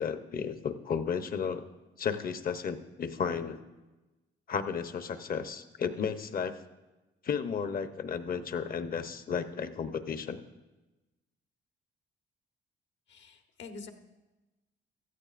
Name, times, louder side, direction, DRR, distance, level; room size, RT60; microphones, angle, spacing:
voice 1, 0.0-1.7 2.0-3.6 4.5-6.5 7.2-10.4, left 6 dB, 45° left, 9 dB, 0.8 m, -33 dB
voice 2, 13.1-13.9, left 4 dB, 70° left, 5 dB, 1.2 m, -46 dB
16.0 x 13.0 x 2.5 m, 1.1 s
cardioid pair, 90°, 20 cm